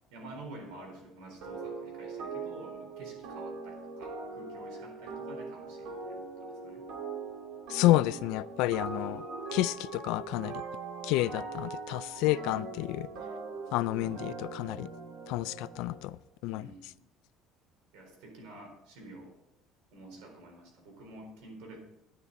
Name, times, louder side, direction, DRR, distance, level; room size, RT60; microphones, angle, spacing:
voice 1, 0.1-6.8 16.5-17.0 17.9-19.3 19.9-21.8, right 2 dB, 90° right, 4.2 m, -49 dB
sound 1, 1.4-16.0, right 4 dB, 70° right, 2.3 m, -41 dB
voice 2, 7.7-9.2 9.5-10.6 11.0-13.1 13.7-14.9 15.3-16.7, left 17 dB, 75° left, 0.3 m, -30 dB
11.0 x 9.7 x 4.0 m
cardioid pair, 155°, 0 cm